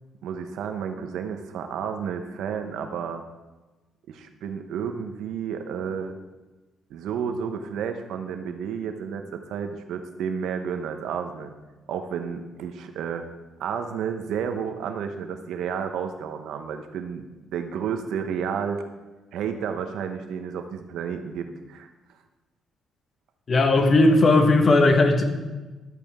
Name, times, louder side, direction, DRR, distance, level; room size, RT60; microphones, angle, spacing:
voice 1, 0.2-3.2 4.1-6.2 6.9-11.6 11.9-13.3 13.6-18.8 19.3-21.9, right 7 dB, 85° right, 7 dB, 1.0 m, -31 dB
voice 2, 23.5-25.2, left 2 dB, 40° left, 5 dB, 1.5 m, -17 dB
12.5 x 8.6 x 3.7 m, 1.2 s
cardioid pair, 90°, 0 cm